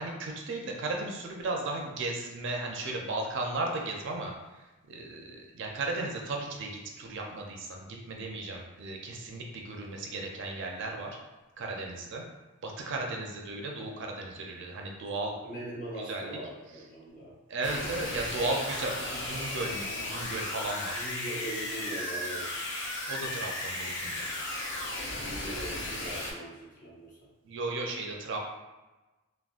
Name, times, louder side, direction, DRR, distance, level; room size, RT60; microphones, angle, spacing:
voice 1, 0.0-4.3 4.9-11.2 11.6-12.2 12.6-15.4 16.0-16.3 17.5-21.0 23.1-24.3 27.4-28.4, right 2 dB, 60° right, 1 dB, 0.4 m, -35 dB
voice 2, 15.4-17.3 20.9-22.6 25.2-27.1, right 1 dB, 40° left, -7 dB, 0.9 m, -41 dB
sound 1, 17.6-26.3, left 1 dB, 60° left, 0.6 m, -35 dB
3.5 x 2.1 x 2.4 m, 1.1 s
head